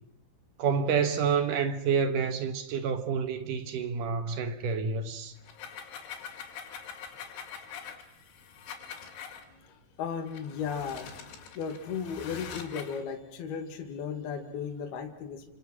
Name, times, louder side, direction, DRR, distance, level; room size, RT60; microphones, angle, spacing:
voice 1, 0.6-5.3, right 6 dB, 70° right, 2.1 m, -28 dB
sound 1, 5.4-9.4 10.3-13.0, left 7 dB, 80° left, 5.0 m, -44 dB
voice 2, 9.5-15.5, left 6 dB, 60° left, 3.6 m, -36 dB
29.0 x 26.0 x 6.2 m
omnidirectional pair, 5.4 m